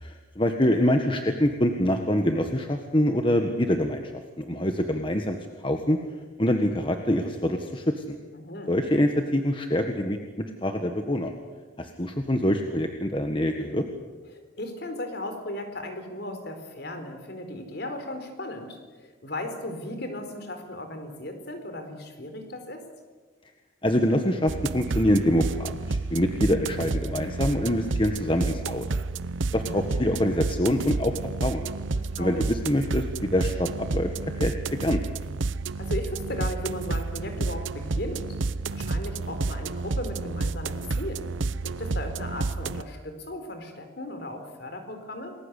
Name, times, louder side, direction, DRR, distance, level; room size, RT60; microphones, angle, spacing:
voice 1, 0.0-6.0 6.4-8.1 8.7-10.2 10.6-11.3 11.8-13.8 23.8-28.9 29.5-31.7 32.2-34.1 34.4-34.5 34.8-35.0, left 1 dB, 25° left, 5 dB, 1.5 m, -25 dB
voice 2, 8.3-8.7 14.3-22.8 29.5-29.9 31.9-32.4 35.8-41.3 41.6-45.4, left 1 dB, 55° left, 7 dB, 4.2 m, -36 dB
sound 1, 24.5-42.8, right 3 dB, 70° right, 0.8 m, -30 dB
29.0 x 20.5 x 8.4 m, 1.4 s
head